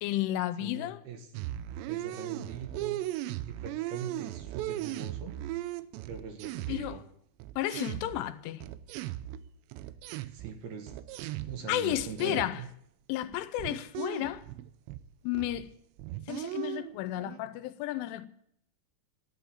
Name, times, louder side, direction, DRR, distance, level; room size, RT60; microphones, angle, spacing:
voice 1, 0.0-1.0 6.7-7.0 7.6-8.7 11.7-12.6 13.1-14.4 15.2-15.7 16.3-18.3, left 14 dB, 90° left, 3.3 m, -32 dB
voice 2, 0.6-1.3 1.9-3.0 3.4-5.3 5.7-5.8 6.1-7.0 10.1-12.7, right 6 dB, 65° right, 3.2 m, -42 dB
sound 1, 1.3-7.1 7.4-11.7 11.9-12.7 13.1-15.1 15.3-15.7 16.0-17.4, right 15 dB, 80° right, 2.7 m, -38 dB
13.5 x 10.5 x 8.8 m
omnidirectional pair, 5.5 m